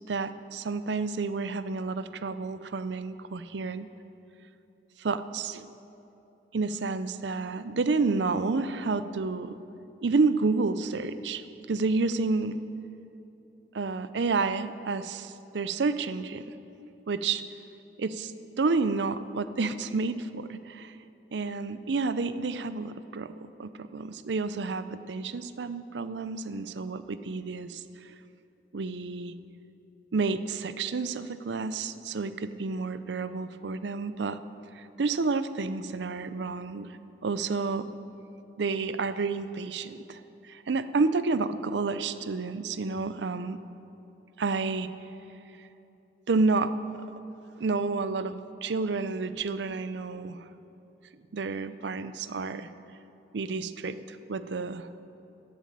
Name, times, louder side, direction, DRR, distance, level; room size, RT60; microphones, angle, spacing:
voice 1, 0.1-3.9 5.0-5.7 6.5-9.6 10.0-12.6 13.7-16.4 17.1-17.4 18.0-21.0 21.3-23.3 23.6-27.8 28.7-29.3 30.1-34.4 34.7-37.0 37.2-37.9 38.6-40.2 40.5-43.6 44.4-44.9 46.3-47.0 47.6-50.4 51.3-52.7 53.3-54.9, right 4 dB, 85° right, 12 dB, 0.5 m, -30 dB
12.5 x 8.2 x 7.6 m, 3.0 s
head